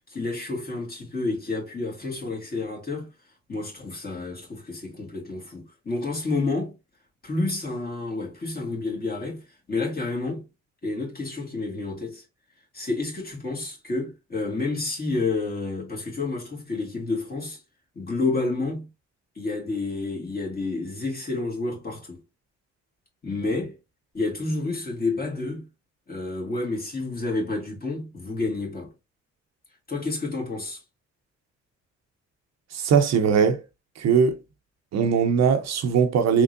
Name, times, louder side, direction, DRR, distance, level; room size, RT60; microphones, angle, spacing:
voice 1, 0.1-3.1 3.5-6.7 7.2-9.4 9.7-10.4 10.8-12.2 12.7-17.6 18.0-18.9 19.4-22.2 23.2-23.7 24.1-25.7 26.1-28.9 29.9-30.8, left 3 dB, 30° left, 1.9 m, -29 dB
voice 2, 32.7-33.6 34.0-34.4 34.9-36.4, right 6 dB, 60° right, 0.7 m, -20 dB
3.6 x 3.2 x 2.6 m
cardioid pair, 90°, 30 cm